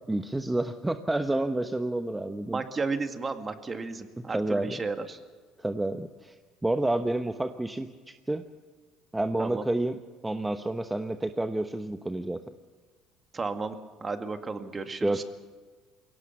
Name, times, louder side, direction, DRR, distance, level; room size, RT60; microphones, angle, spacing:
voice 1, 0.1-2.6 4.3-4.8 5.6-6.3 6.6-8.4 9.1-10.0 10.2-12.4 15.0-15.2, right 2 dB, 10° right, 8 dB, 0.9 m, -29 dB
voice 2, 2.5-5.2 9.4-9.7 13.3-15.2, right 4 dB, 30° right, 7 dB, 1.9 m, -33 dB
22.5 x 17.5 x 7.1 m, 1.4 s
supercardioid pair, 80°, 0 cm